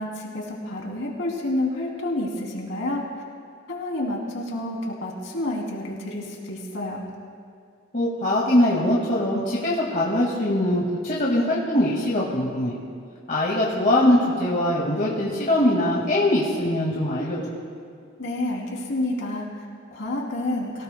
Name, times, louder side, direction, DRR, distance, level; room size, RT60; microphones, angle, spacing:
voice 1, 0.0-3.0 3.7-7.1 18.2-20.8, left 1 dB, 65° left, -2 dB, 2.9 m, -29 dB
voice 2, 7.9-12.8 13.3-17.4, left 1 dB, 40° left, -5 dB, 1.9 m, -22 dB
23.5 x 17.0 x 2.2 m, 2.4 s
head